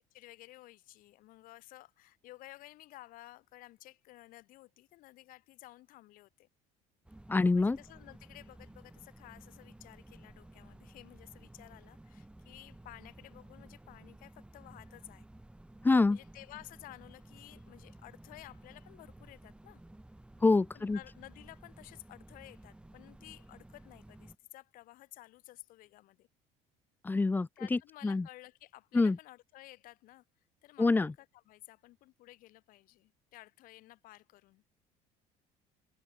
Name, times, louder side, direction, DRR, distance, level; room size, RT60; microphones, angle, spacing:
voice 1, 0.1-6.5 7.5-15.3 16.0-19.8 20.7-26.3 27.6-30.2 30.6-34.6, left 17 dB, 70° left, 3.7 m, -54 dB
sound 1, 7.0-24.3, right 1 dB, 5° right, 1.5 m, -55 dB
voice 2, 7.3-7.8 15.8-16.2 20.4-21.0 27.0-27.8 28.0-28.2 28.9-29.2 30.8-31.1, left 3 dB, 10° left, 0.6 m, -26 dB
supercardioid pair, 105°, 15 cm